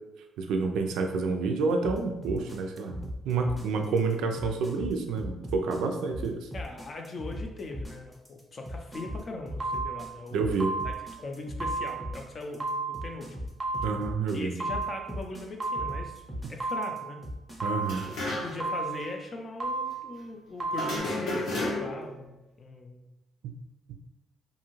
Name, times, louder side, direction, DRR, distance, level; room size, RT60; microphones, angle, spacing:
voice 1, 0.4-6.5 10.3-10.7 13.8-14.6 17.6-18.1, right 4 dB, 85° right, 4 dB, 0.3 m, -29 dB
sound 1, 1.8-17.6, equal, ahead, 0.7 m, -38 dB
voice 2, 6.5-10.6 10.8-13.4 13.7-13.8 14.3-16.2 16.5-17.2 18.3-23.1, left 2 dB, 40° left, 3 dB, 0.5 m, -40 dB
sound 2, 8.9-9.2 9.6-10.2 10.6-11.2 11.6-12.2 12.6-13.2 13.6-14.2 14.6-15.2 15.6-16.2 16.6-17.2 17.6-18.2 18.6-19.2 19.6-20.2 20.6-21.0, right 3 dB, 40° right, 0.6 m, -33 dB
sound 3, 17.8-18.7 19.0-19.1 20.7-22.1, left 2 dB, 80° left, 0.9 m, -32 dB
2.6 x 2.4 x 3.0 m, 0.97 s
cardioid pair, 90°, 0 cm